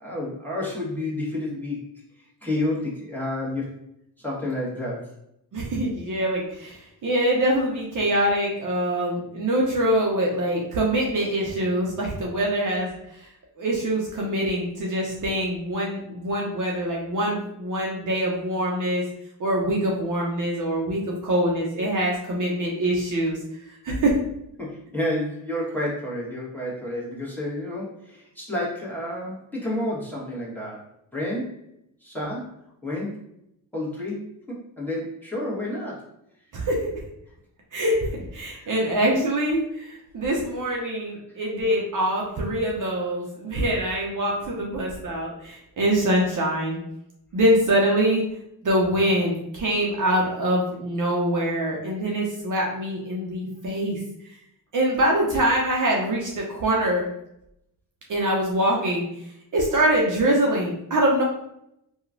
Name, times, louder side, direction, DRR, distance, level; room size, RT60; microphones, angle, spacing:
voice 1, 0.0-1.8 2.4-3.7 4.2-5.1 24.6-30.8 31.1-31.6 32.0-32.6 32.8-33.2 33.7-36.0 38.5-38.7, left 1 dB, 5° left, -6 dB, 1.3 m, -30 dB
voice 2, 5.5-13.3 13.6-19.0 19.4-23.4 23.8-24.1 36.5-36.9 37.7-46.8 47.3-48.2 48.6-54.0 54.7-57.0 58.1-59.1 59.5-61.2, right 1 dB, 45° right, -2 dB, 0.7 m, -24 dB
2.9 x 2.3 x 2.5 m, 0.79 s
supercardioid pair, 55°, 42 cm